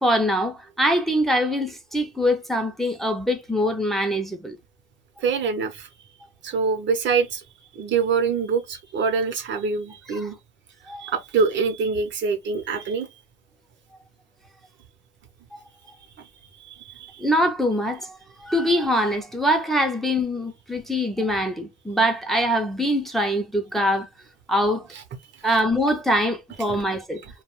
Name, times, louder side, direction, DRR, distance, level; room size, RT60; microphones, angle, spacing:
voice 1, 0.0-4.6 10.1-10.3 10.9-11.0 15.5-15.6 17.2-24.1 24.5-24.9 25.4-27.2, equal, ahead, 0.6 m, -23 dB
voice 2, 5.2-5.9 6.4-7.4 7.8-10.4 11.0-13.2 16.2-16.3 16.6-17.3 26.7-26.8, right 5 dB, 65° right, 0.8 m, -25 dB
2.3 x 2.2 x 3.0 m
cardioid pair, 90°, 20 cm